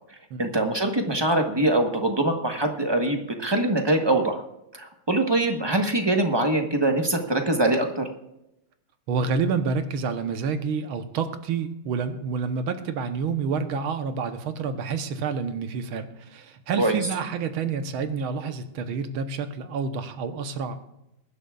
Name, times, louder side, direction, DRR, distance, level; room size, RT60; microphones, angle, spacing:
voice 1, 0.4-4.4 4.7-8.1 16.8-17.0, right 1 dB, 15° right, 4 dB, 0.9 m, -23 dB
voice 2, 9.1-20.8, right 5 dB, 85° right, 9 dB, 1.8 m, -28 dB
22.5 x 11.0 x 2.4 m, 0.86 s
omnidirectional pair, 2.3 m